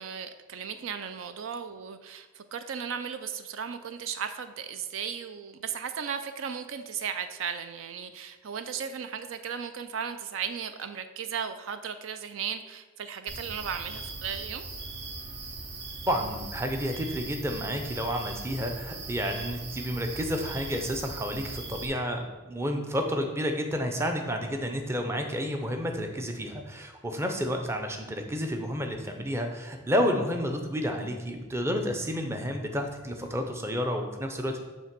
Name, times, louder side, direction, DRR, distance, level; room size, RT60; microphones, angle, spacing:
voice 1, 0.0-14.6, right 7 dB, 70° right, 10 dB, 0.4 m, -36 dB
sound 1, 13.3-21.9, right 3 dB, 50° right, 0.8 m, -39 dB
voice 2, 16.1-34.6, equal, 10° right, 4 dB, 0.6 m, -30 dB
7.4 x 3.3 x 6.0 m, 1.3 s
head